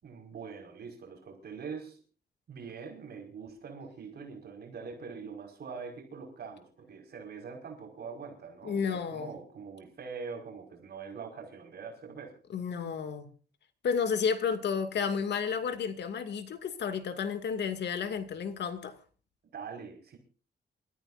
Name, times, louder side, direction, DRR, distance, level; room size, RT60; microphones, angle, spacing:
voice 1, 0.0-2.0 2.5-12.3 19.5-20.2, right 5 dB, 65° right, 5.2 m, -43 dB
voice 2, 8.6-9.3 12.5-13.3 13.8-19.0, left 6 dB, 80° left, 2.3 m, -32 dB
27.5 x 14.5 x 2.6 m
wide cardioid pair, 140°, 18 cm